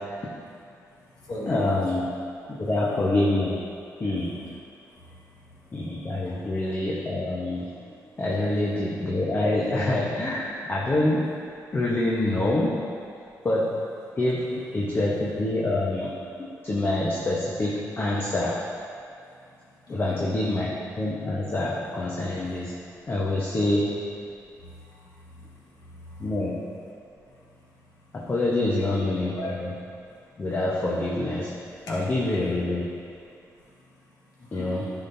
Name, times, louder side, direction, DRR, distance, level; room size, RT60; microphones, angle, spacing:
voice 1, 0.3-2.0 2.5-3.2 4.2-6.5 7.7-8.2 14.1-14.2 14.5-14.6 16.5-16.7 19.2-20.2 22.2-23.1 23.5-23.7 24.3-26.4 27.0-28.3 28.7-28.9 29.4-29.5 29.8-30.5 31.6-32.0 33.2-34.8, left 1 dB, 75° left, -6 dB, 1.9 m, -44 dB
voice 2, 1.5-2.0 2.5-3.6 4.0-4.4 5.7-7.7 8.2-11.3 11.7-12.8 13.4-13.8 14.2-16.1 16.4-18.6 19.9-22.7 23.1-24.0 26.2-26.6 28.1-29.7 30.4-31.5 31.9-32.9 34.5-34.9, left 2 dB, 35° left, -5 dB, 1.1 m, -26 dB
10.5 x 6.0 x 2.8 m, 2.4 s
cardioid pair, 75°, 7 cm